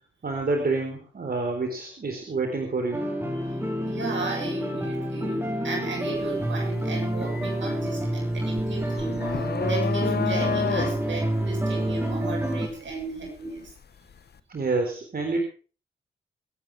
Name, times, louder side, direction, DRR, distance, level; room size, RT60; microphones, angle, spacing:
voice 1, 0.2-3.0 14.5-15.4, right 3 dB, 50° right, 3 dB, 4.0 m, -28 dB
sound 1, 2.9-12.7, right 1 dB, 10° right, 4.8 m, -28 dB
voice 2, 3.3-13.7, right 3 dB, 70° right, 1 dB, 7.4 m, -35 dB
sound 2, 6.1-6.4 6.8-13.8, left 7 dB, 55° left, 1.2 m, -31 dB
23.0 x 9.2 x 4.8 m, 0.37 s
supercardioid pair, 55°, 20 cm